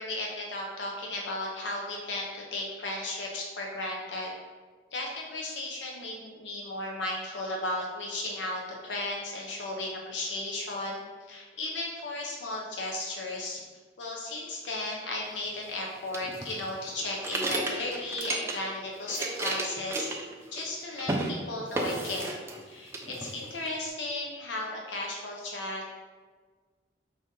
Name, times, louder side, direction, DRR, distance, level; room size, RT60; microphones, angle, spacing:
voice 1, 0.0-4.3 4.9-13.6 14.0-20.1 20.5-22.4 22.7-25.9, left 2 dB, 80° left, -1 dB, 0.7 m, -35 dB
sound 1, 16.1-18.8 19.0-20.7 21.0-21.3 21.7-22.6 22.9-23.7, right 2 dB, 15° right, 0.4 m, -33 dB
4.9 x 2.7 x 3.8 m, 1.5 s
head